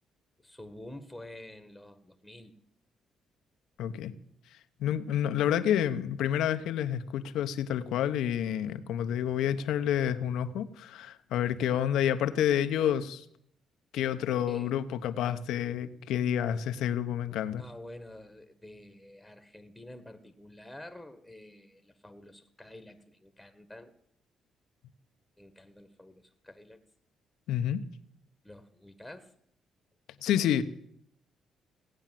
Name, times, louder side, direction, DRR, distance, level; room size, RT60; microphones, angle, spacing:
voice 1, 0.4-2.5 14.4-14.7 17.6-23.9 25.4-26.8 28.4-29.3, left 1 dB, 5° left, 8 dB, 1.5 m, -49 dB
voice 2, 3.8-4.1 4.8-13.2 13.9-17.6 27.5-27.8 30.2-30.6, left 10 dB, 85° left, 11 dB, 0.9 m, -29 dB
17.0 x 8.9 x 7.5 m, 0.71 s
cardioid pair, 90°, 0 cm